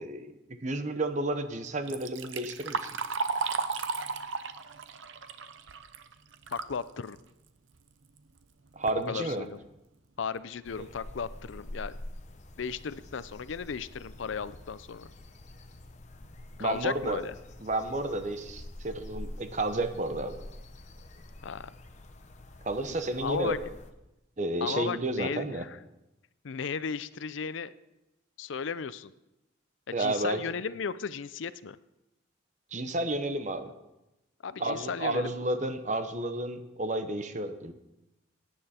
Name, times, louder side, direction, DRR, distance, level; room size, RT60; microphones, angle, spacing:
voice 1, 0.0-2.9 8.7-9.4 16.6-17.2 17.6-20.4 22.6-23.6 24.4-25.6 29.9-30.4 32.7-33.7 34.6-37.7, right 1 dB, 35° right, 9 dB, 0.9 m, -31 dB
Liquid, 1.7-6.8 7.2-7.3 8.2-8.3 8.7-9.0 9.6-9.7 10.2-10.3 10.7-11.0, right 5 dB, 70° right, 0.7 m, -34 dB
voice 2, 6.5-7.2 9.1-9.6 10.2-11.9 12.6-15.1 16.6-17.3 21.4-21.7 23.2-23.6 24.6-25.8 26.4-27.7 28.4-29.1 30.0-31.8 34.4-35.3, left 6 dB, 70° left, 15 dB, 0.5 m, -35 dB
sound 1, 10.6-23.9, left 1 dB, 35° left, 0.8 m, -46 dB
17.5 x 10.0 x 4.3 m, 0.95 s
head